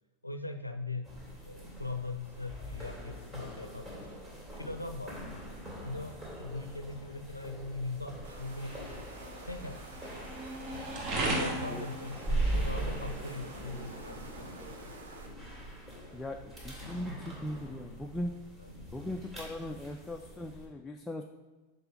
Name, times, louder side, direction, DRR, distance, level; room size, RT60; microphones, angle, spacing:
voice 1, 0.2-1.1 1.4-4.1 4.5-5.6 5.8-9.1 9.4-10.4 11.2-14.9 18.8-18.9, left 3 dB, 85° left, 7 dB, 0.5 m, -41 dB
sound 1, 1.0-20.7, right 1 dB, 20° right, 2.5 m, -41 dB
sound 2, 1.3-16.8, right 2 dB, 40° right, 1.3 m, -42 dB
sound 3, 8.2-15.3, right 2 dB, 65° right, 1.0 m, -50 dB
voice 2, 16.1-18.4 18.9-21.2, left 1 dB, 10° left, 3 dB, 0.4 m, -39 dB
6.7 x 4.2 x 5.3 m, 1.2 s
figure-of-eight pair, 90°, 0 cm